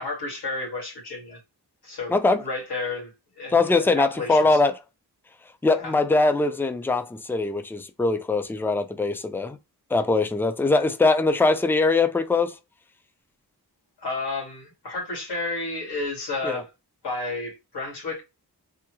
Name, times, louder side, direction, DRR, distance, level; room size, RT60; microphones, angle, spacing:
voice 1, 0.0-1.4 1.8-2.1 2.4-4.6 5.8-6.0 14.0-16.7 17.0-18.2, left 3 dB, 85° left, 1.8 m, -32 dB
voice 2, 2.1-2.4 3.5-4.7 5.6-9.6 9.9-12.5 16.4-16.6, left 3 dB, 5° left, 0.4 m, -22 dB
3.5 x 2.0 x 3.0 m
cardioid pair, 60°, 39 cm